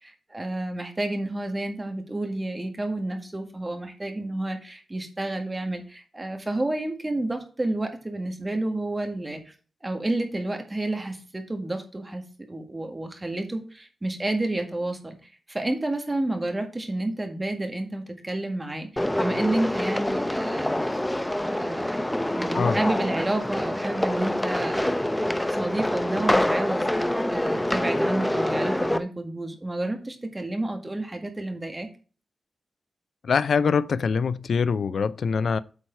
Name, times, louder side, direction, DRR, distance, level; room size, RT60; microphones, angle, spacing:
voice 1, 0.0-9.5 9.8-12.2 12.5-21.1 21.4-26.9 27.3-31.9, right 2 dB, 20° right, 1.7 m, -30 dB
sound 1, 19.0-29.0, left 1 dB, 10° left, 0.6 m, -26 dB
voice 2, 33.2-35.6, left 5 dB, 70° left, 0.4 m, -24 dB
8.5 x 4.7 x 4.5 m
wide cardioid pair, 105°, 0 cm